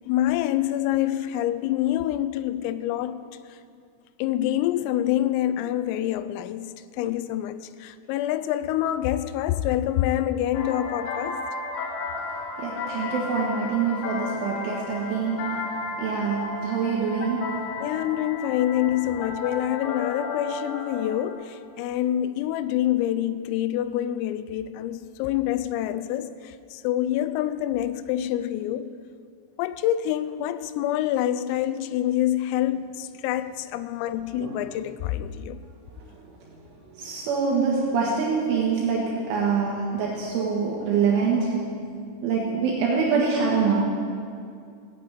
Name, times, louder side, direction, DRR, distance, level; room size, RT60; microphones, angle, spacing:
voice 1, 0.1-3.2 3.5-3.6 4.2-6.7 7.0-11.4 17.8-28.9 29.6-35.6, left 12 dB, 85° left, 3.3 m, -26 dB
sound 1, 10.5-21.3, left 3 dB, 65° left, 2.6 m, -33 dB
voice 2, 12.6-15.6 16.0-17.7 34.4-34.6 37.0-41.7 42.2-43.8, right 5 dB, 75° right, 3.7 m, -25 dB
16.5 x 8.6 x 8.9 m
omnidirectional pair, 6.0 m